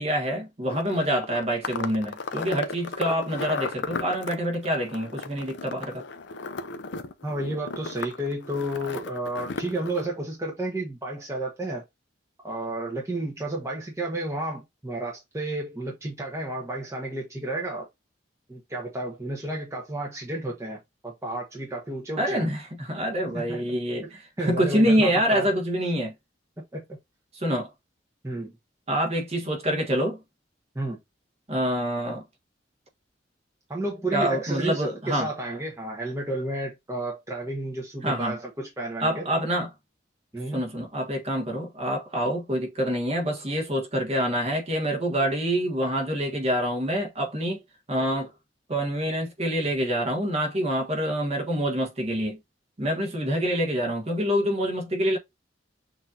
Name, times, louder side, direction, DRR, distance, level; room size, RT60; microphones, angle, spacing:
voice 1, 0.0-6.0 22.2-26.1 27.3-27.7 28.9-30.2 31.5-32.2 34.1-35.3 38.0-38.4 39.0-39.7 40.5-47.6 47.9-48.3 48.7-52.4 52.8-55.2, equal, 35° right, 1.4 m, -26 dB
sound 1, 0.7-10.1, left 4 dB, 70° left, 0.6 m, -35 dB
voice 2, 7.2-11.8 12.4-17.9 18.5-22.5 23.3-23.6 24.4-25.5 26.7-26.8 28.2-28.5 30.7-31.0 33.7-39.2 40.3-40.6, right 1 dB, 15° right, 1.0 m, -32 dB
6.4 x 2.8 x 2.5 m
head